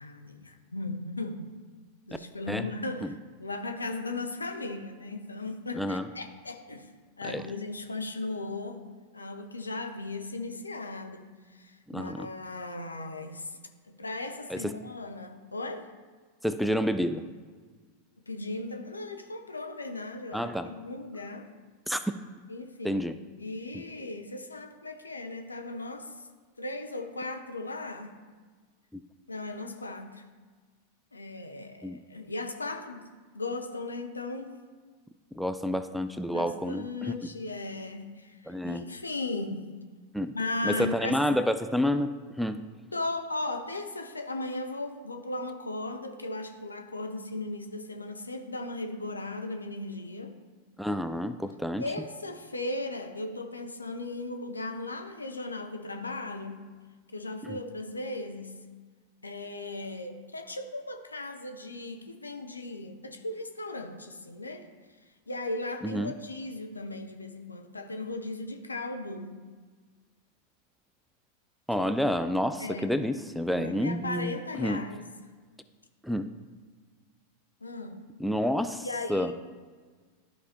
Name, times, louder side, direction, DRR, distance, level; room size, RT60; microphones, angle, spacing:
voice 1, 0.0-1.5 2.1-6.9 7.2-8.8 9.1-13.6 13.9-15.9 18.3-21.5 22.5-23.0 23.4-26.2 26.6-28.1 29.3-30.3 31.1-33.1 33.3-34.6 36.3-39.7 40.3-41.1 42.9-50.3 51.8-56.6 57.1-58.6 59.2-64.7 65.3-69.4 71.8-71.9 72.6-73.0 73.5-75.1 77.6-78.0 78.8-79.3, left 2 dB, 80° left, 5 dB, 0.7 m, -37 dB
voice 2, 5.8-6.1 7.2-7.4 11.9-12.3 14.5-14.7 16.4-17.2 20.3-20.7 21.9-22.0 22.8-23.1 23.7-23.8 28.9-29.0 31.8-32.0 35.4-37.3 38.5-38.8 40.1-40.3 40.6-42.1 42.4-42.6 50.8-51.8 57.4-57.6 65.8-66.1 71.7-74.8 76.0-76.3 78.2-79.3, equal, ahead, 10 dB, 0.4 m, -29 dB
13.0 x 4.7 x 2.9 m, 1.5 s
figure-of-eight pair, 90°, 0 cm